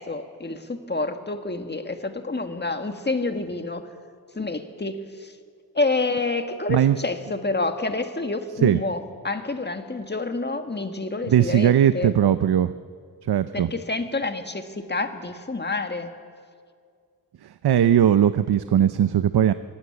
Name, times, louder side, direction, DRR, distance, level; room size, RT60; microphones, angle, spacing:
voice 1, 0.0-3.9 4.3-5.4 5.7-12.1 13.5-16.1, left 3 dB, 25° left, 7 dB, 1.6 m, -28 dB
voice 2, 11.3-12.7 13.3-13.7 17.4-19.5, right 10 dB, 80° right, 13 dB, 0.6 m, -19 dB
23.5 x 16.0 x 8.7 m, 2.1 s
wide cardioid pair, 105°, 38 cm